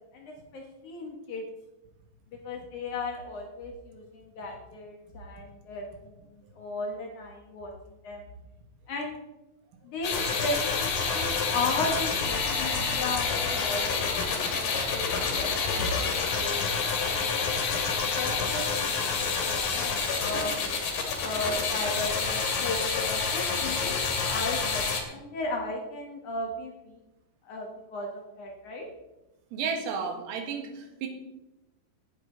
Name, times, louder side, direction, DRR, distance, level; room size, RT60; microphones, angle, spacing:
voice 1, 0.1-1.4 2.4-7.7 8.0-8.2 8.9-9.2 9.8-10.1 10.4-15.1 15.3-16.7 17.8-20.6 21.2-27.0 27.5-28.9, left 2 dB, 70° left, 1 dB, 1.8 m, -36 dB
sound 1, 10.0-25.0, left 5 dB, 55° left, 3.4 m, -28 dB
voice 2, 29.5-31.1, right 5 dB, 85° right, 4 dB, 4.4 m, -32 dB
16.5 x 10.0 x 3.9 m, 0.97 s
omnidirectional pair, 5.7 m